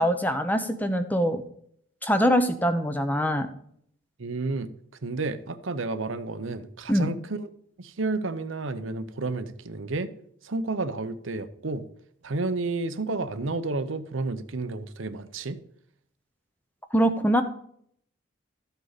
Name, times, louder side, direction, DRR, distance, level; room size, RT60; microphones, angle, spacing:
voice 1, 0.0-1.4 2.0-3.5 6.9-7.1 16.9-17.4, equal, 10° left, 0.7 m, -23 dB
voice 2, 4.2-4.7 5.0-7.5 7.8-10.1 10.4-11.8 12.2-15.6, right 3 dB, 75° right, 0.8 m, -31 dB
13.5 x 8.0 x 4.1 m
head